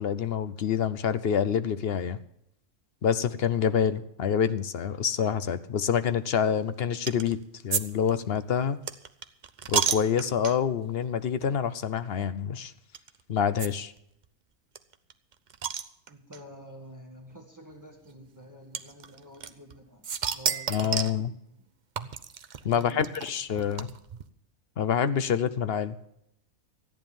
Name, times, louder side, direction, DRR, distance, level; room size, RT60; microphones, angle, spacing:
voice 1, 0.0-2.2 3.0-7.4 7.6-8.8 9.7-12.7 13.3-13.9 20.7-21.3 22.6-23.9 24.8-26.0, left 7 dB, 55° left, 13 dB, 0.8 m, -27 dB
sound 1, 7.1-7.3 7.7-10.8 11.4-11.6 11.8-11.9 12.9-13.1 13.6-13.7 14.0-14.1 14.2-14.3 14.7-16.4 17.3-17.4 18.7-19.7 20.0-21.2 22.0-24.2, right 7 dB, 45° right, 0.6 m, -31 dB
voice 2, 16.1-21.6 22.6-23.5, equal, 15° right, 2 dB, 2.1 m, -49 dB
14.0 x 9.7 x 7.0 m, 0.76 s
omnidirectional pair, 1.4 m